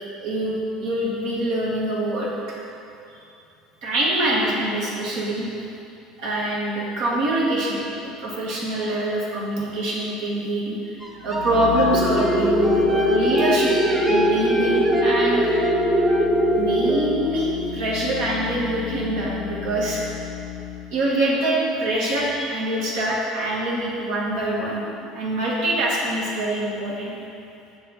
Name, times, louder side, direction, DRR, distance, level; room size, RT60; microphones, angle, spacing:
voice 1, 0.2-2.6 3.8-5.5 6.2-10.9 11.2-13.7 14.0-15.5 16.5-20.1 20.9-24.8 25.1-27.1, right 1 dB, 70° right, -5 dB, 1.4 m, -24 dB
sound 1, 11.0-17.2, right 1 dB, 10° right, 0.6 m, -30 dB
sound 2, 11.1-21.0, left 12 dB, 80° left, 0.4 m, -34 dB
sound 3, 11.9-16.9, equal, 40° right, 1.0 m, -21 dB
6.3 x 3.1 x 5.5 m, 2.7 s
hypercardioid pair, 75°, 0 cm